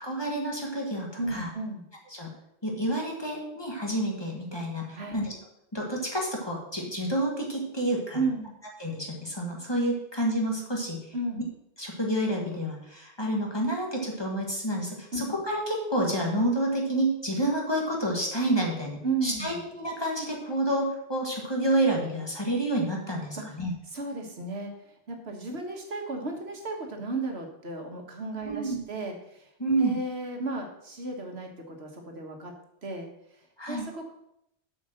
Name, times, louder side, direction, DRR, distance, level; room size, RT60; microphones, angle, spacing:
voice 1, 0.0-1.5 2.1-2.3 2.6-5.3 5.7-8.2 8.8-11.1 11.8-23.7 28.4-28.8 29.6-30.0 33.6-33.9, right 1 dB, 25° left, -1 dB, 1.7 m, -29 dB
voice 2, 1.2-1.8 4.9-5.2 8.1-8.5 11.1-11.4 15.1-15.3 19.0-19.6 23.3-23.4 23.9-29.5 29.8-32.5 32.8-34.1, right 3 dB, 70° right, 2 dB, 1.7 m, -34 dB
8.1 x 5.4 x 6.5 m, 0.79 s
omnidirectional pair, 1.1 m